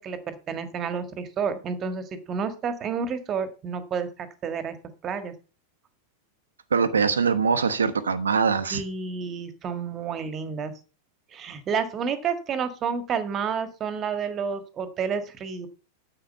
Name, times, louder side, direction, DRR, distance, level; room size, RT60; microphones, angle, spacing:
voice 1, 0.0-4.8 5.0-5.3 8.7-10.7 11.3-15.7, right 6 dB, 30° right, 10 dB, 1.8 m, -30 dB
voice 2, 6.7-8.8, right 5 dB, 70° right, 13 dB, 1.0 m, -22 dB
9.4 x 8.0 x 5.5 m, 0.34 s
figure-of-eight pair, 90°, 0 cm